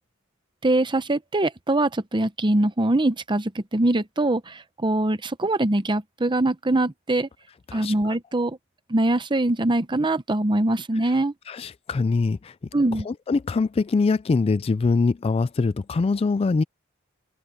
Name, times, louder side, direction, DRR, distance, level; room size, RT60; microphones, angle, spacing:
voice 1, 0.6-7.3 7.7-8.6 8.9-11.3 12.7-13.1, right 2 dB, 25° right, 0.8 m, -23 dB
voice 2, 7.7-8.2 11.0-11.2 11.5-12.6 12.9-16.6, left 4 dB, 30° left, 0.3 m, -23 dB
open air
head